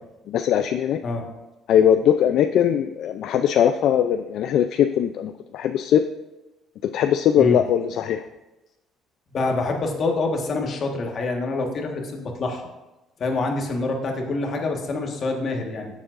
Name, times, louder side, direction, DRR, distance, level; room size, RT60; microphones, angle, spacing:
voice 1, 0.3-1.0 1.7-6.0 6.9-8.2, left 9 dB, 55° left, 8 dB, 0.4 m, -20 dB
voice 2, 9.3-12.7 13.2-15.9, left 2 dB, 35° left, 2 dB, 1.4 m, -26 dB
14.0 x 7.3 x 2.5 m, 1.0 s
cardioid pair, 160°, 0 cm